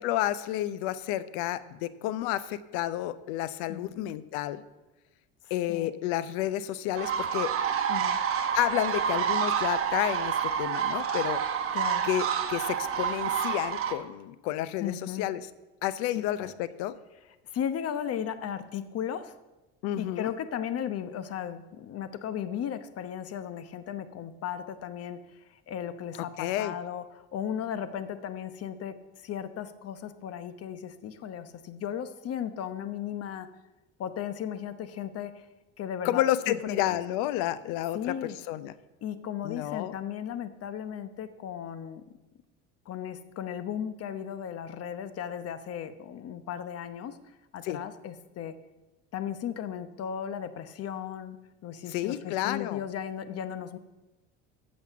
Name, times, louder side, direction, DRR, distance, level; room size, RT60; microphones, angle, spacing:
voice 1, 0.0-4.6 5.5-7.5 8.5-11.4 12.0-15.4 15.8-16.9 19.8-20.3 26.4-26.7 36.0-38.2 38.5-38.7 39.4-39.9 47.6-47.8 51.9-52.8, left 13 dB, 70° left, 15 dB, 0.7 m, -30 dB
sound 1, 6.9-13.9, right 8 dB, 40° right, 1.2 m, -28 dB
voice 2, 7.9-8.2 11.7-12.1 14.8-15.3 16.1-16.5 17.5-19.3 20.0-25.2 25.5-29.0 29.2-33.5 34.0-35.4 35.8-37.0 37.9-38.4 39.0-42.0 42.9-47.2 47.5-48.5 49.1-51.4 51.6-53.8, left 9 dB, 45° left, 11 dB, 1.0 m, -36 dB
8.5 x 6.6 x 7.2 m, 1.1 s
supercardioid pair, 80°, 33 cm